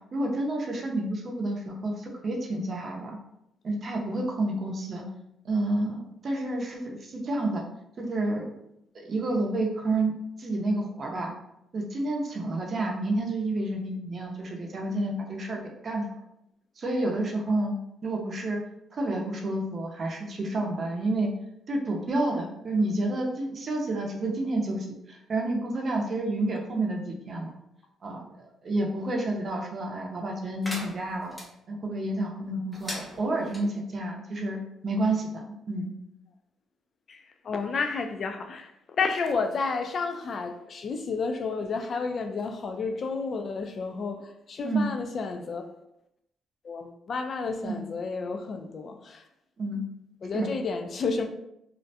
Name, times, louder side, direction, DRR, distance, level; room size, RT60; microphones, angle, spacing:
voice 1, 0.1-3.2 3.6-5.0 5.4-7.6 8.0-8.5 8.9-10.1 10.4-11.3 11.7-16.1 16.8-17.7 18.0-18.6 18.9-21.3 21.7-27.6 28.0-31.3 31.7-32.9 33.2-35.9 44.6-44.9 47.6-47.8 49.6-49.8 50.3-50.5, right 2 dB, 45° right, 0 dB, 0.5 m, -29 dB
sound 1, 30.6-31.5 32.7-33.6, equal, 15° left, 0.6 m, -39 dB
voice 2, 37.1-38.7 39.0-45.6 46.6-49.2 50.2-51.3, left 4 dB, 50° left, 6 dB, 0.3 m, -31 dB
2.4 x 2.1 x 2.6 m, 0.82 s
cardioid pair, 90°, 0 cm